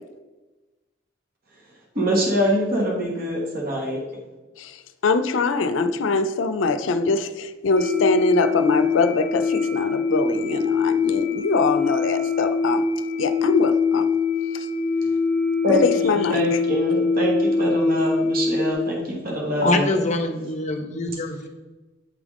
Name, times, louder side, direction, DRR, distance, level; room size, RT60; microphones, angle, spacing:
voice 1, 1.9-4.0 15.6-20.0, equal, 50° right, -1 dB, 1.3 m, -24 dB
voice 2, 5.0-12.8 13.2-14.1 15.7-16.4, left 3 dB, 85° left, 10 dB, 0.4 m, -23 dB
sound 1, 7.7-18.7, left 4 dB, 25° right, 0.9 m, -23 dB
voice 3, 19.6-21.5, left 2 dB, 40° left, 6 dB, 0.6 m, -24 dB
8.6 x 3.5 x 3.6 m, 1.2 s
head